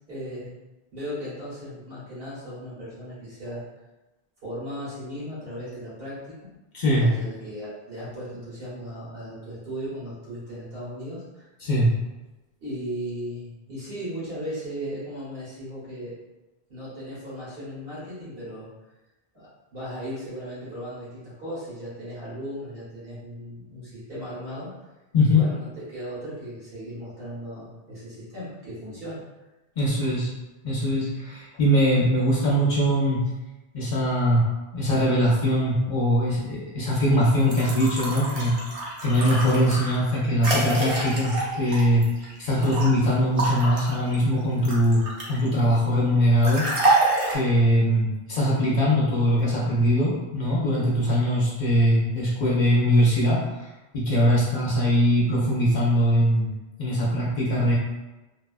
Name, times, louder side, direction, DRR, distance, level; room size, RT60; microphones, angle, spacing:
voice 1, 0.1-0.5 0.9-3.6 4.4-6.5 6.8-11.5 12.6-16.1 16.7-18.7 19.3-24.7 25.3-29.2, equal, 65° right, -9 dB, 1.4 m, -36 dB
voice 2, 6.7-7.1 11.6-11.9 25.1-25.5 29.8-30.3 30.6-33.3 33.7-34.4 34.7-38.6 39.0-42.1 42.4-47.0 47.3-53.4 53.9-56.5 56.8-57.7, equal, 55° left, -6 dB, 0.7 m, -21 dB
sound 1, 37.4-42.9 43.4-45.5 46.4-47.3, right 2 dB, 45° right, 0.5 m, -27 dB
2.8 x 2.3 x 2.4 m, 1.1 s
omnidirectional pair, 1.0 m